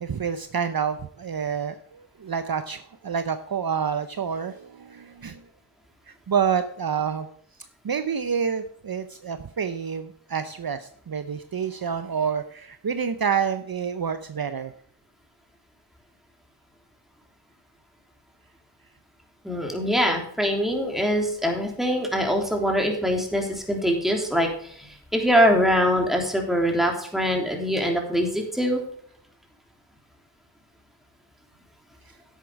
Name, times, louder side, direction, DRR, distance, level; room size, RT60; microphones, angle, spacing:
voice 1, 0.0-5.4 6.1-7.3 7.8-14.7, right 7 dB, 50° right, 10 dB, 0.7 m, -28 dB
voice 2, 19.4-28.8, equal, ahead, 2 dB, 3.3 m, -23 dB
10.5 x 8.2 x 4.7 m, 0.62 s
cardioid pair, 45°, 45 cm